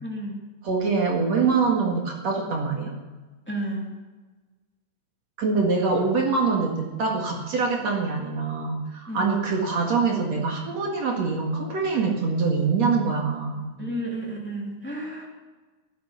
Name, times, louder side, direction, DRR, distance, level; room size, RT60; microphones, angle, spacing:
voice 1, 0.0-0.4 3.5-3.9 9.1-9.4 13.8-15.3, right 1 dB, 10° left, -2 dB, 0.7 m, -32 dB
voice 2, 0.6-2.9 5.4-13.8, right 4 dB, 60° right, 0 dB, 1.8 m, -24 dB
18.5 x 11.0 x 5.8 m, 1.3 s
omnidirectional pair, 6.0 m